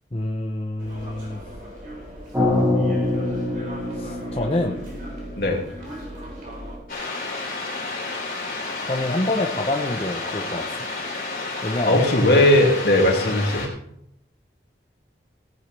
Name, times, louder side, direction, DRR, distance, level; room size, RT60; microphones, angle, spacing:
voice 1, 0.1-1.4 3.9-4.8 8.8-10.8 11.6-12.0, left 1 dB, 35° left, 1 dB, 0.8 m, -26 dB
sound 1, 0.8-6.8, equal, 50° right, 4.3 m, -38 dB
sound 2, 2.3-6.5, left 2 dB, 10° right, 2.6 m, -25 dB
sound 3, 6.9-13.7, left 3 dB, 50° left, 3.9 m, -31 dB
voice 2, 11.9-13.7, left 1 dB, 70° left, 0 dB, 2.7 m, -18 dB
17.5 x 10.0 x 3.4 m, 0.72 s
head